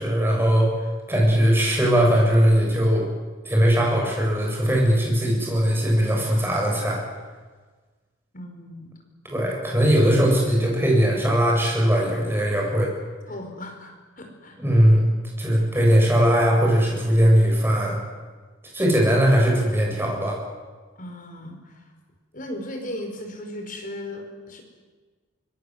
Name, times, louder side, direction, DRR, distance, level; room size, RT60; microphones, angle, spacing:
voice 1, 0.0-3.1 3.4-7.0 9.3-12.9 14.6-15.0 15.4-18.0 18.7-20.4, equal, 10° right, -1 dB, 8.0 m, -20 dB
voice 2, 8.3-8.9 13.3-14.6 21.0-21.8 22.3-24.6, left 1 dB, 45° left, 3 dB, 4.9 m, -36 dB
25.0 x 22.0 x 7.9 m, 1.4 s
head